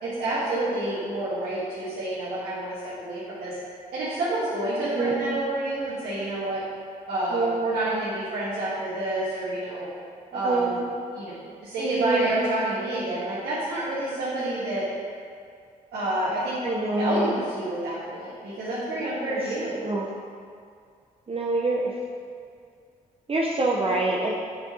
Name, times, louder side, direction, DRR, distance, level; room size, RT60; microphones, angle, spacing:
voice 1, 0.0-3.6 3.9-6.6 7.1-9.9 10.3-10.8 11.1-11.3 11.6-14.8 15.9-16.5 16.9-19.8, right 1 dB, 85° right, -11 dB, 1.6 m, -28 dB
voice 2, 5.0-5.4 7.3-7.7 10.4-10.8 11.8-12.5 16.6-17.3 19.3-19.4 19.8-20.1 21.3-21.9 23.3-24.3, right 2 dB, 35° right, -3 dB, 0.8 m, -26 dB
7.3 x 6.2 x 2.8 m, 2.2 s
supercardioid pair, 50°, 16 cm